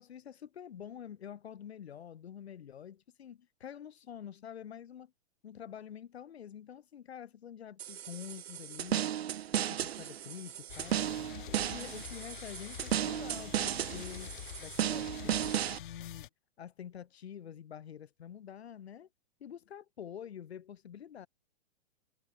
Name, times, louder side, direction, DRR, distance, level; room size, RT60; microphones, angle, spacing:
voice 1, 0.0-5.1 5.4-9.0 9.5-11.0 11.5-14.3 14.6-16.3 16.6-19.1 19.4-21.3, left 9 dB, 80° left, 6.4 m, -47 dB
sound 1, 7.8-15.8, right 10 dB, 75° right, 1.4 m, -35 dB
sound 2, 10.7-16.3, left 14 dB, 50° left, 1.1 m, -47 dB
hypercardioid pair, 155°, 31 cm